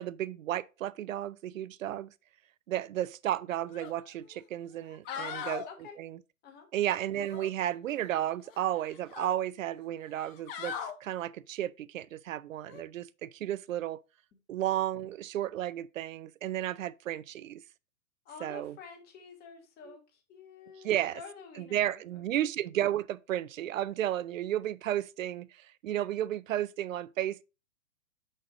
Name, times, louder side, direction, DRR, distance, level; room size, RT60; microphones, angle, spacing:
voice 1, 0.0-2.1 2.7-5.6 6.0-6.2 6.7-14.0 14.5-17.6 18.4-18.8 19.8-20.0 20.8-21.2 21.6-27.4, right 12 dB, 65° right, 0.6 m, -33 dB
sound 1, 3.7-3.9 4.3-4.4 4.9-5.7 7.1-8.1 8.4-9.4 10.1-10.9 12.6-12.8, left 7 dB, 40° left, 1.1 m, -41 dB
voice 2, 5.1-6.0 6.4-6.7 18.2-20.0 20.3-22.0, left 6 dB, 20° left, 1.4 m, -46 dB
6.4 x 6.3 x 3.8 m
figure-of-eight pair, 120°, 43 cm